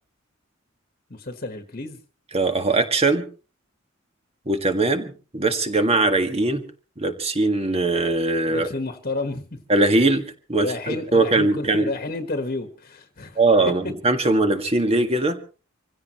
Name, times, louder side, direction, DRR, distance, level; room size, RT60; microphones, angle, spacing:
voice 1, 1.1-2.0 8.5-9.6 10.6-13.4 13.6-13.7, left 2 dB, 45° left, 6 dB, 1.4 m, -30 dB
voice 2, 2.3-3.2 4.5-6.6 7.0-8.7 9.7-10.2 10.5-11.9 13.4-15.4, right 2 dB, 30° right, 7 dB, 1.7 m, -21 dB
26.0 x 16.0 x 3.1 m, 0.36 s
head